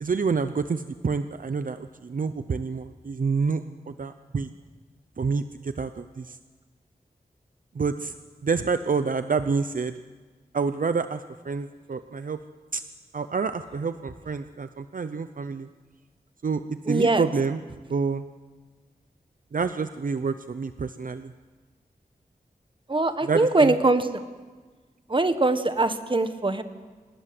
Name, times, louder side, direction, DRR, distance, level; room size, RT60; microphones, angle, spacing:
voice 1, 0.0-4.5 5.2-6.4 7.8-8.1 8.4-9.9 10.5-12.4 12.7-12.8 13.1-15.7 16.4-17.6 17.9-18.2 19.5-21.3 23.2-23.7, right 5 dB, 60° right, 10 dB, 0.8 m, -28 dB
voice 2, 16.9-17.3 22.9-24.2 25.1-26.6, right 2 dB, 30° right, 9 dB, 1.5 m, -22 dB
26.0 x 19.5 x 7.8 m, 1.4 s
wide cardioid pair, 90°, 16 cm